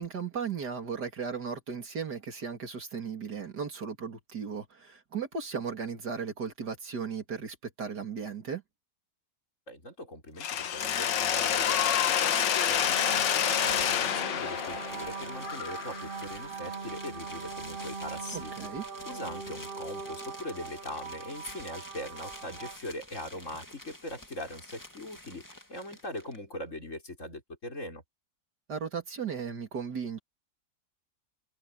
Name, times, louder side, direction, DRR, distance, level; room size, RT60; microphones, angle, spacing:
voice 1, 0.0-8.6 18.3-18.8 28.7-30.2, right 6 dB, 65° right, 3.0 m, -36 dB
voice 2, 9.7-18.7 19.1-28.0, left 1 dB, 45° left, 5.9 m, -41 dB
Mechanisms, 10.4-16.3, left 9 dB, 90° left, 1.8 m, -28 dB
sound 1, 12.8-22.8, right 5 dB, 40° right, 1.0 m, -41 dB
sound 2, 13.6-26.4, left 1 dB, 10° left, 2.4 m, -48 dB
omnidirectional pair, 1.9 m